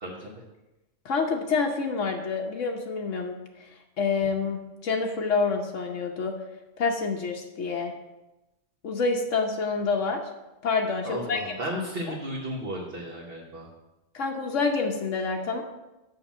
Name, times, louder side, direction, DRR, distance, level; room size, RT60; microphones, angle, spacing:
voice 1, 0.0-0.3 11.0-13.7, right 1 dB, 50° right, -3 dB, 1.4 m, -34 dB
voice 2, 1.0-3.7 4.0-6.3 6.8-7.9 8.8-10.2 10.6-12.2 14.1-15.6, left 4 dB, 75° left, 1 dB, 1.2 m, -28 dB
6.6 x 5.7 x 7.2 m, 1.0 s
omnidirectional pair, 1.3 m